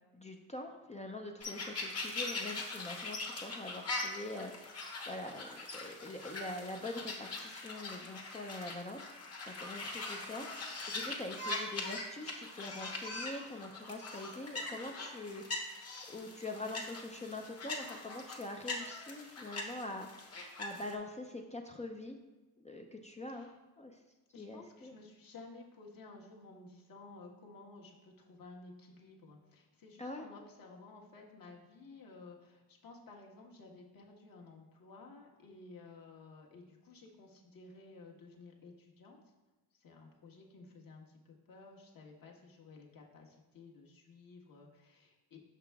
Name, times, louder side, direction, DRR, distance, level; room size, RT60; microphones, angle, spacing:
voice 1, 0.1-15.4 16.1-20.1 20.6-22.2 22.6-23.5 23.8-24.0 24.4-24.9 30.0-30.2, left 2 dB, 15° left, 3 dB, 0.5 m, -44 dB
sound 1, 1.4-20.9, left 2 dB, 35° left, 1.2 m, -42 dB
voice 2, 24.3-39.2 39.7-45.4, left 3 dB, 50° left, -1 dB, 1.4 m, -54 dB
5.9 x 5.6 x 3.5 m, 1.2 s
cardioid pair, 95°, 42 cm